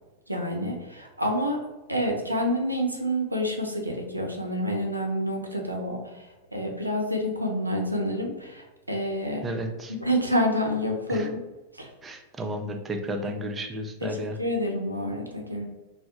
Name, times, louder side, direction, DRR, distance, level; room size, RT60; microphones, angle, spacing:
voice 1, 0.3-1.6 1.9-6.3 6.5-9.5 10.0-11.4 11.7-11.9 14.0-15.7, equal, 85° right, 1 dB, 0.4 m, -28 dB
voice 2, 9.4-9.9 11.1-11.3 12.0-14.4, right 1 dB, 20° right, 4 dB, 0.4 m, -33 dB
2.2 x 2.0 x 2.8 m, 1.1 s
figure-of-eight pair, 90°, 0 cm